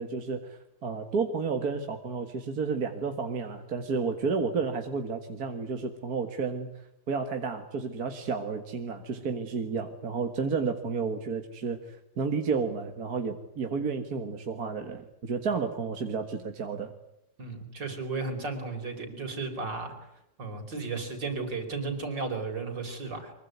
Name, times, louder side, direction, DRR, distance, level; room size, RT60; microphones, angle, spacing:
voice 1, 0.0-6.7 7.1-16.9, right 5 dB, 55° right, 5 dB, 2.1 m, -31 dB
voice 2, 17.4-19.9 20.4-23.3, right 4 dB, 70° right, 5 dB, 5.4 m, -34 dB
24.5 x 23.0 x 9.5 m, 0.82 s
omnidirectional pair, 2.0 m